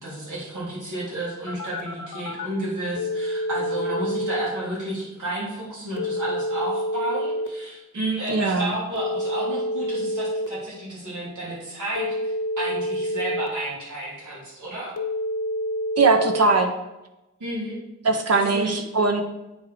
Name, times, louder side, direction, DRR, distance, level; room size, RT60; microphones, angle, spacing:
voice 1, 0.0-14.9 17.4-17.8 18.3-18.8, right 1 dB, 85° right, -7 dB, 2.9 m, -31 dB
Telephone, 1.5-2.5 3.0-4.5 6.0-7.5 9.0-10.5 12.0-13.5 15.0-16.5, equal, 90° left, 0.9 m, -27 dB
voice 2, 8.3-8.7 16.0-16.7 18.0-19.2, right 3 dB, 55° right, 4 dB, 1.0 m, -20 dB
9.1 x 3.6 x 5.0 m, 0.97 s
wide cardioid pair, 90°, 30 cm